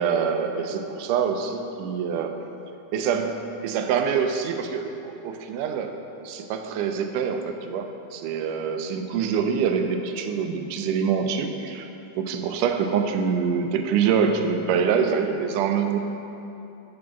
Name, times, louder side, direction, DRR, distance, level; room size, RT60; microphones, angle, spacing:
voice 1, 0.0-2.4 2.9-11.9 12.2-16.0, right 6 dB, 90° right, 6 dB, 2.2 m, -25 dB
7.4 x 6.2 x 5.9 m, 2.9 s
omnidirectional pair, 3.6 m